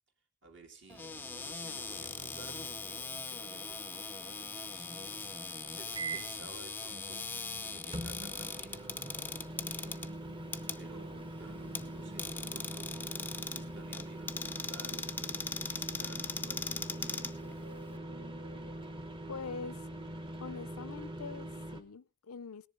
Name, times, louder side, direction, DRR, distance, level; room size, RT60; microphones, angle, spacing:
voice 1, 0.4-7.3 7.6-8.9 9.6-10.2 10.6-12.9 13.5-15.2 15.6-17.3, right 3 dB, 55° right, 3.0 m, -55 dB
Cupboard open or close, 0.9-18.0, left 4 dB, 10° left, 0.6 m, -41 dB
sound 1, 5.9-6.4 7.9-21.8, right 1 dB, 25° right, 1.1 m, -43 dB
sound 2, 6.9-18.7, right 2 dB, 80° right, 1.1 m, -56 dB
voice 2, 19.3-19.9 20.4-22.7, left 5 dB, 90° left, 0.6 m, -43 dB
18.0 x 10.5 x 3.9 m
head